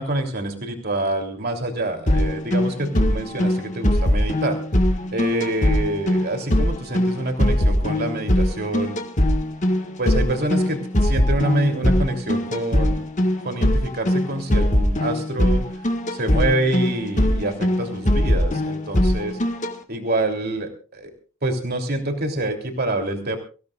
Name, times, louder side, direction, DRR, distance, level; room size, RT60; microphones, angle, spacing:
voice 1, 0.0-4.6 5.1-9.0 10.0-13.0 13.4-15.6 16.1-19.4 19.9-21.1 21.4-23.4, right 1 dB, 50° right, 3 dB, 3.2 m, -26 dB
sound 1, 2.1-19.7, left 1 dB, 35° left, 1.7 m, -21 dB
25.0 x 16.0 x 2.5 m, 0.36 s
head